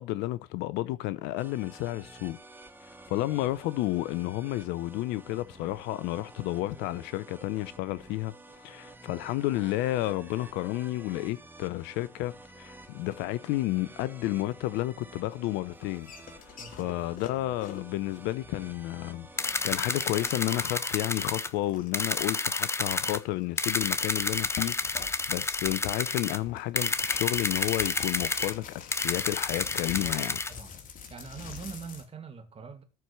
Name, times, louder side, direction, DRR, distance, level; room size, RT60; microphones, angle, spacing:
voice 1, 0.0-2.4 3.1-16.1 16.4-30.4, left 16 dB, 60° left, 0.7 m, -31 dB
sound 1, 1.4-20.6, right 2 dB, 10° right, 1.2 m, -51 dB
sound 2, 15.6-32.0, left 6 dB, 45° left, 2.2 m, -47 dB
voice 2, 16.6-17.2 30.0-30.8 31.1-32.8, right 6 dB, 30° right, 2.3 m, -44 dB
sound 3, 19.4-21.5 21.9-23.2 23.6-26.4 26.8-28.5 28.9-30.5, left 3 dB, 15° left, 0.7 m, -30 dB
13.5 x 4.7 x 6.8 m
hypercardioid pair, 70°, 19 cm